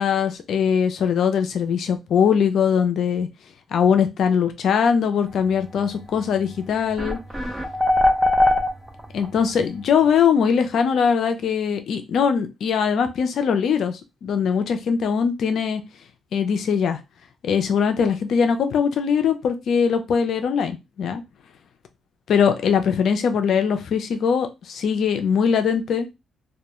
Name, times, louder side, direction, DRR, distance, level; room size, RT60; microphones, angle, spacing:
voice 1, 0.0-3.3 3.7-7.2 9.1-15.8 16.3-17.0 17.4-21.2 22.3-26.1, left 7 dB, 65° left, 7 dB, 0.5 m, -21 dB
sound 1, 6.4-6.5 7.0-9.3, left 1 dB, 10° right, 0.6 m, -20 dB
2.3 x 2.1 x 2.9 m, 0.24 s
cardioid pair, 90°, 0 cm